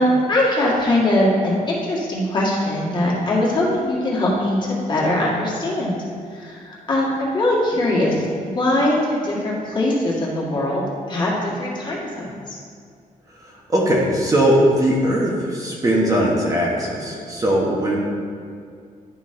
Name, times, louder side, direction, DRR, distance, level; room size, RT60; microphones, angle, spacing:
voice 1, 0.0-6.0 6.3-12.6, left 1 dB, 35° left, -5 dB, 1.7 m, -21 dB
voice 2, 13.3-18.0, equal, 25° right, -4 dB, 1.1 m, -20 dB
11.0 x 4.0 x 3.8 m, 2.2 s
cardioid pair, 135°, 14 cm